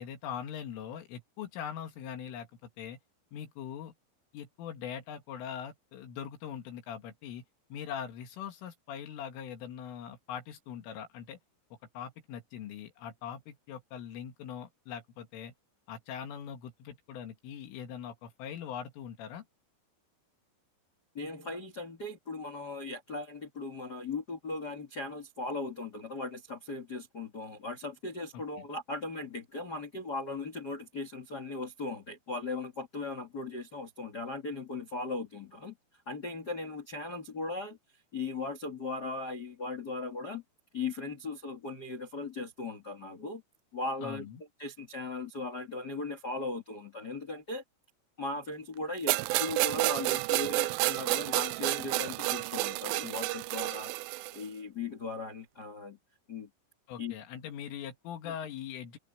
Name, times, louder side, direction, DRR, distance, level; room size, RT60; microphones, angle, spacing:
voice 1, 0.0-3.0 3.3-3.9 4.3-7.4 7.7-11.4 11.9-15.5 15.9-19.4 28.3-28.6 44.0-44.4 56.9-59.0, left 8 dB, 80° left, 4.5 m, -42 dB
voice 2, 21.1-35.8 36.0-37.8 38.1-40.4 40.7-43.4 43.7-44.3 44.6-47.6 48.2-53.9 54.3-56.0 56.3-56.5 57.0-57.1, left 3 dB, 40° left, 1.4 m, -38 dB
sound 1, 49.1-54.4, right 20 dB, 85° right, 3.0 m, -30 dB
open air
omnidirectional pair, 5.7 m